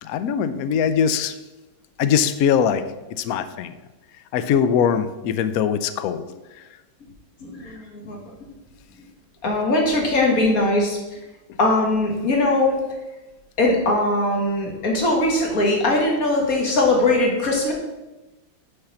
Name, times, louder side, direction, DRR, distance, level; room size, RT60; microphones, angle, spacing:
voice 1, 0.0-1.3 2.0-2.8 3.2-3.7 4.3-6.2 6.5-6.6, left 7 dB, 90° left, 11 dB, 0.7 m, -21 dB
voice 2, 7.4-8.2 9.4-11.0 11.6-12.7 13.6-17.7, left 2 dB, 45° left, 0 dB, 2.1 m, -20 dB
6.7 x 5.7 x 7.0 m, 1.1 s
omnidirectional pair, 2.2 m